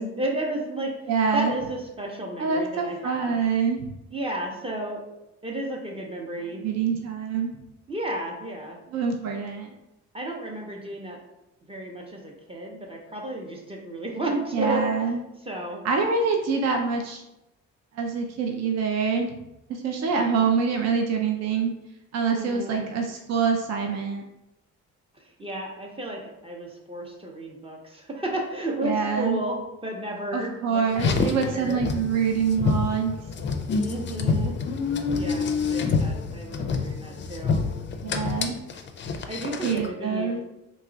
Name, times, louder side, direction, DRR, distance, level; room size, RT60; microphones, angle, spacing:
voice 1, 0.0-0.9 1.3-3.4 4.1-5.0 5.4-6.6 7.9-8.8 10.1-11.2 11.7-14.9 15.5-15.8 20.2-20.5 22.3-22.9 25.1-31.9 33.8-34.6 35.1-37.7 39.3-40.4, right 1 dB, 20° right, 0 dB, 0.6 m, -32 dB
voice 2, 1.1-1.5 2.4-3.9 6.6-7.5 8.9-9.7 14.5-15.2 15.8-17.2 18.0-19.4 19.7-21.7 22.1-24.2 28.8-29.4 30.3-33.1 38.0-38.6 39.6-40.4, right 5 dB, 60° right, 4 dB, 0.5 m, -25 dB
Car, 30.9-39.9, left 4 dB, 40° left, 0.4 m, -27 dB
3.1 x 2.3 x 3.8 m, 0.93 s
cardioid pair, 90°, 30 cm